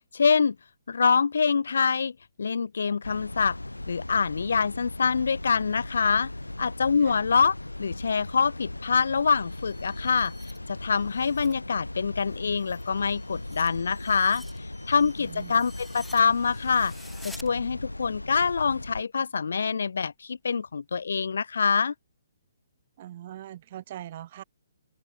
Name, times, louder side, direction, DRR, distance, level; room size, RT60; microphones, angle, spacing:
voice 1, 0.1-0.5 0.9-3.6 3.9-6.3 6.6-14.4 14.9-16.9 17.2-21.9, left 5 dB, 60° left, 1.7 m, -25 dB
sound 1, 3.0-19.0, left 1 dB, 80° left, 4.0 m, -38 dB
sound 2, 9.2-11.6 12.0-17.5, left 1 dB, ahead, 3.8 m, -51 dB
voice 2, 15.2-15.5 23.0-24.4, right 12 dB, 40° right, 1.8 m, -41 dB
open air
figure-of-eight pair, 130°, 0 cm